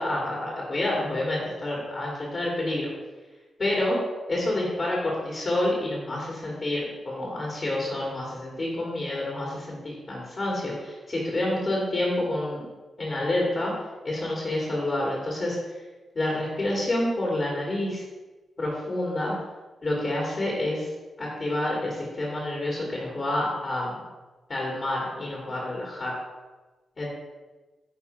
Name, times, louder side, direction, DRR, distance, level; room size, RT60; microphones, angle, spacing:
voice 1, 0.0-2.9 3.6-4.0 4.3-12.7 13.0-13.7 14.0-15.7 16.1-18.0 18.6-19.4 19.8-20.9 21.2-24.0 24.5-26.1 27.0-27.1, left 1 dB, 40° left, -4 dB, 2.3 m, -28 dB
10.5 x 3.5 x 4.6 m, 1.2 s
cardioid pair, 95°, 0 cm